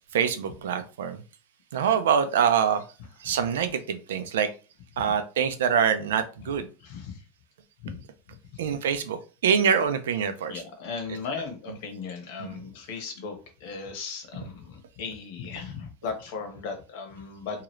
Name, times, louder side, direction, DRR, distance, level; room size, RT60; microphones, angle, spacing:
voice 1, 0.1-1.2 1.7-2.8 3.2-4.5 5.0-6.7 8.6-10.6 12.4-12.7, right 7 dB, 90° right, 9 dB, 0.5 m, -25 dB
voice 2, 6.8-7.2 7.8-8.0 8.5-8.7 10.5-13.3 13.6-17.6, left 5 dB, 65° left, 4 dB, 1.0 m, -37 dB
2.8 x 2.4 x 3.1 m, 0.34 s
supercardioid pair, 130°, 0 cm